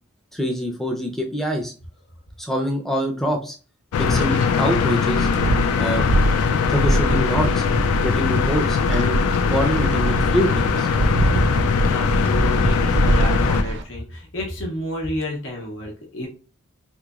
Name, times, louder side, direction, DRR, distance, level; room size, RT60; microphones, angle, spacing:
voice 1, 0.3-1.7 2.4-3.5 4.0-5.3 5.8-6.1 6.5-7.6 8.0-9.2 9.5-10.9, equal, ahead, 1 dB, 0.5 m, -25 dB
sound 1, 3.9-13.6, left 6 dB, 90° left, 0.3 m, -21 dB
Wind, 4.1-13.8, right 2 dB, 55° right, 0.4 m, -24 dB
voice 2, 11.8-16.3, left 1 dB, 60° left, -1 dB, 0.8 m, -30 dB
3.8 x 3.0 x 2.4 m, 0.36 s
head